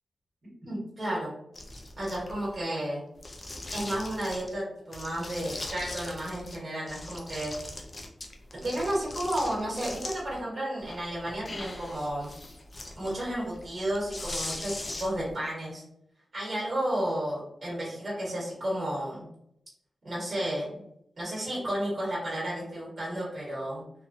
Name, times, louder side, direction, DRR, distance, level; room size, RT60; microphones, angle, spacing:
voice 1, 0.6-1.3 2.0-3.0 3.7-7.5 8.5-12.3 13.0-15.8 16.3-19.3 20.0-20.8 21.2-23.8, right 1 dB, 40° right, -7 dB, 1.3 m, -32 dB
sound 1, 1.5-2.6 3.2-4.5 4.9-6.6 6.9-10.4 10.8-15.3, left 2 dB, 35° left, 0.4 m, -40 dB
2.9 x 2.2 x 2.6 m, 0.77 s
wide cardioid pair, 130°, 0 cm